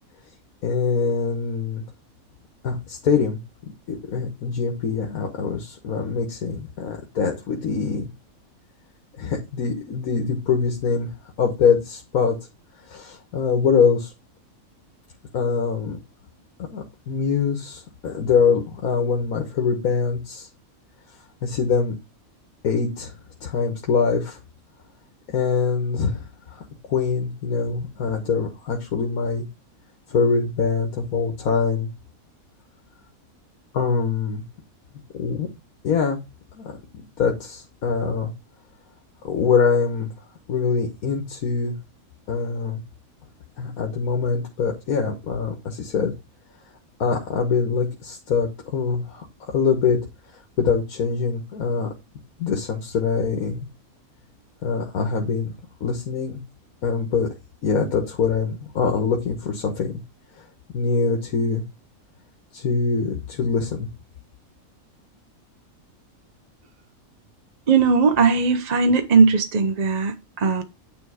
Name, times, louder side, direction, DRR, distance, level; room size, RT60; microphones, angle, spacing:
voice 1, 0.6-1.8 2.6-3.4 3.9-8.1 9.2-11.1 11.4-12.4 12.9-14.1 15.3-16.0 16.7-20.5 21.4-21.9 22.6-23.1 23.4-24.4 25.3-26.6 26.9-29.4 30.1-31.9 33.7-34.4 35.1-35.5 35.8-36.2 36.5-38.3 39.2-40.1 40.5-41.7 42.3-42.8 43.6-46.1 47.0-49.3 49.5-50.0 50.6-51.9 52.4-53.6 54.6-55.5 55.8-56.4 56.8-57.3 57.6-60.0 60.7-61.6 62.5-63.9, left 5 dB, 85° left, 1.6 m, -23 dB
voice 2, 67.7-70.6, right 4 dB, 40° right, 0.6 m, -18 dB
9.4 x 3.4 x 4.7 m
omnidirectional pair, 1.5 m